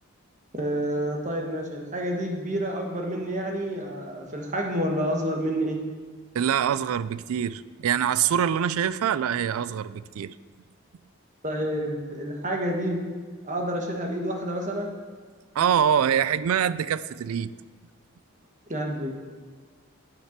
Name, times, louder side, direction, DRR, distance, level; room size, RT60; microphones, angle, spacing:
voice 1, 0.5-5.8 11.4-13.0 13.4-14.9 18.7-19.1, equal, 35° right, 1 dB, 1.3 m, -29 dB
voice 2, 6.3-10.3 15.5-17.5, right 8 dB, 85° right, 17 dB, 0.3 m, -24 dB
9.4 x 6.6 x 5.9 m, 1.6 s
head